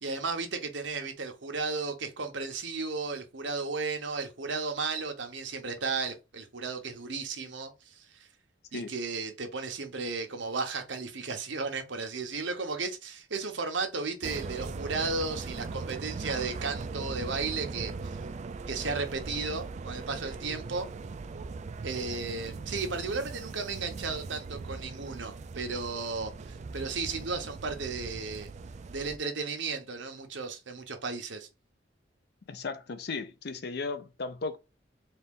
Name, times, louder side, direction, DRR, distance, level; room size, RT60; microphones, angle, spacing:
voice 1, 0.0-8.1 8.7-18.2 18.7-20.9 21.8-28.5 28.9-31.5, right 4 dB, 75° right, 1.0 m, -34 dB
sound 1, 14.2-29.2, right 4 dB, 40° right, 0.3 m, -40 dB
voice 2, 32.5-34.6, left 4 dB, 60° left, 0.6 m, -36 dB
4.2 x 2.5 x 3.6 m
head